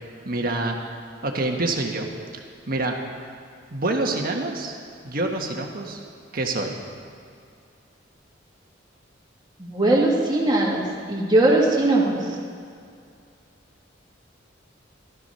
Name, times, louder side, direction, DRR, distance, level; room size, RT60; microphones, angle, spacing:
voice 1, 0.2-0.8 1.2-2.1 2.7-3.0 3.7-4.8 5.0-6.0 6.3-6.8, right 2 dB, 50° right, 2 dB, 1.5 m, -26 dB
voice 2, 9.6-12.4, right 2 dB, 20° right, -3 dB, 2.2 m, -20 dB
15.5 x 12.5 x 5.6 m, 2.4 s
head